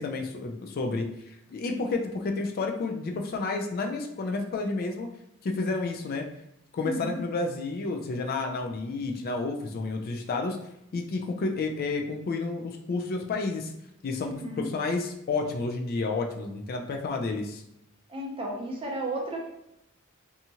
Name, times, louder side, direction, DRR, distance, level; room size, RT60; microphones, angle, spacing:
voice 1, 0.0-5.1 5.4-6.3 6.7-10.6 10.9-13.7 14.0-17.6, left 3 dB, 45° left, 3 dB, 0.3 m, -30 dB
voice 2, 6.8-7.2 14.2-14.7 18.1-19.6, right 1 dB, 25° right, -1 dB, 0.6 m, -34 dB
2.8 x 2.3 x 2.7 m, 0.81 s
head